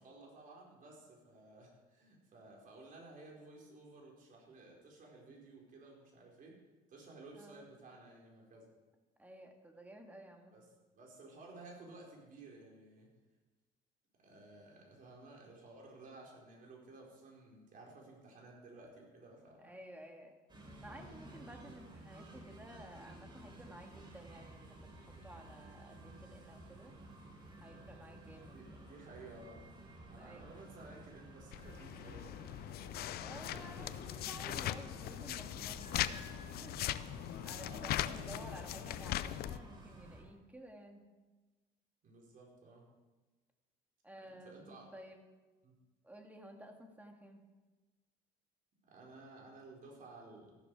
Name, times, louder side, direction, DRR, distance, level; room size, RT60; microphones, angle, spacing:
voice 1, 0.0-6.6 6.9-8.7 10.5-10.6 10.9-13.1 14.2-19.7 20.9-21.0 28.4-29.7 30.1-34.0 34.4-34.7 36.4-36.7 37.6-38.2 42.0-42.8 44.2-44.9 45.6-45.7 48.9-50.6, right 2 dB, 55° right, -2 dB, 4.6 m, -55 dB
voice 2, 7.3-7.6 9.2-10.5 19.6-20.4 20.8-27.0 27.6-28.8 30.0-30.5 33.2-36.8 37.1-41.1 44.0-45.2 46.0-47.5, right 1 dB, 10° right, 3 dB, 2.1 m, -54 dB
sound 1, 20.5-40.2, right 1 dB, 25° right, 4.1 m, -54 dB
sound 2, 31.5-39.6, left 13 dB, 65° left, 0.6 m, -40 dB
14.0 x 12.0 x 4.8 m, 1.2 s
cardioid pair, 110°, 17 cm